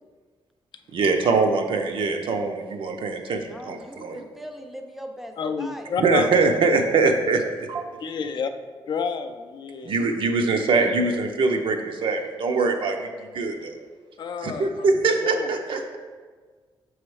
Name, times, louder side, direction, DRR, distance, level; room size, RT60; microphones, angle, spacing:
voice 1, 0.9-4.2 6.0-7.8 9.8-13.7 14.4-16.0, right 4 dB, 70° right, 4 dB, 0.6 m, -23 dB
voice 2, 3.5-5.9, equal, ahead, 4 dB, 0.5 m, -40 dB
voice 3, 5.4-6.3 8.0-8.5 8.9-9.9 14.2-14.9 15.3-15.5, left 6 dB, 55° left, 7 dB, 0.4 m, -29 dB
6.9 x 3.2 x 4.7 m, 1.5 s
wide cardioid pair, 155°, 9 cm